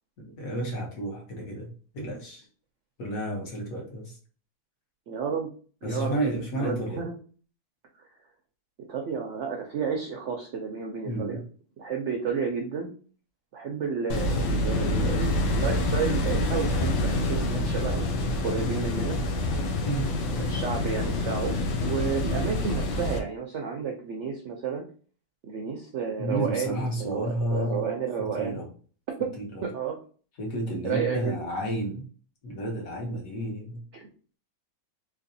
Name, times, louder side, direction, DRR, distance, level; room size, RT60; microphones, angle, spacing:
voice 1, 0.2-2.5 3.0-4.2 5.8-7.0 11.0-11.4 19.8-20.1 26.2-27.9 28.2-28.7 29.4-29.6 30.4-32.1 32.4-33.8, right 1 dB, 60° left, -1 dB, 1.4 m, -31 dB
voice 2, 5.1-5.5 5.8-6.2 6.6-7.1 8.9-11.4 11.8-12.9 13.5-18.1 18.4-19.2 20.4-24.8 25.4-28.6 29.2-29.3 29.6-30.0 30.8-31.4 33.9-34.1, right 6 dB, 70° right, 2 dB, 0.6 m, -31 dB
sound 1, 14.1-23.2, left 1 dB, 85° left, 1.2 m, -27 dB
3.3 x 3.1 x 2.6 m, 0.41 s
omnidirectional pair, 1.7 m